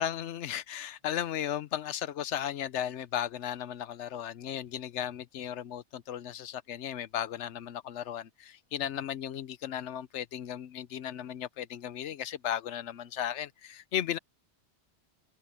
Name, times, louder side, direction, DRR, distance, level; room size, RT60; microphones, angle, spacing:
voice 1, 0.0-14.2, left 10 dB, 90° left, 1.0 m, -35 dB
omnidirectional pair, 1.2 m